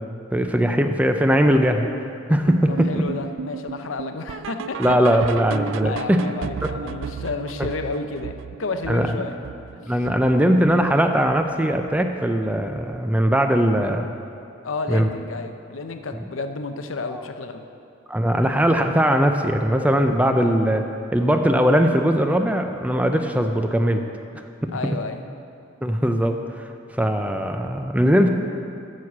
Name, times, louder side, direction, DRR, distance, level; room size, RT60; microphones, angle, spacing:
voice 1, 0.0-1.9 2.3-3.0 4.8-6.2 8.9-9.2 9.9-14.1 14.9-15.1 17.1-17.2 18.1-20.8 21.1-24.0 24.6-24.7 25.8-26.7 26.9-28.3, equal, 5° right, 5 dB, 0.4 m, -20 dB
sound 1, 2.5-11.6 11.9-12.2 12.5-12.6 13.1-13.2 13.7-13.8, right 7 dB, 75° right, 0.3 m, -35 dB
voice 2, 2.7-5.2 5.8-9.3 9.8-9.9 14.6-17.7 24.7-25.2, left 3 dB, 85° left, 7 dB, 0.6 m, -31 dB
9.1 x 6.5 x 7.2 m, 2.6 s
head